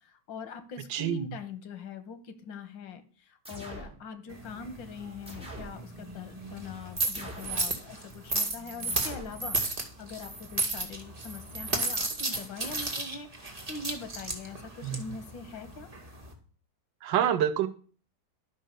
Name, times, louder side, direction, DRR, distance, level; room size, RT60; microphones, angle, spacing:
voice 1, 0.0-15.9, left 4 dB, 90° left, 11 dB, 1.9 m, -43 dB
voice 2, 0.9-1.2 14.8-15.0 17.0-17.7, right 10 dB, 85° right, 12 dB, 1.4 m, -26 dB
sound 1, 3.4-4.0 5.3-5.8 7.1-7.6 8.9-9.4, right 1 dB, 5° right, 2.9 m, -43 dB
sound 2, 4.3-16.3, right 2 dB, 20° right, 1.9 m, -34 dB
11.5 x 5.5 x 6.6 m, 0.41 s
omnidirectional pair, 2.0 m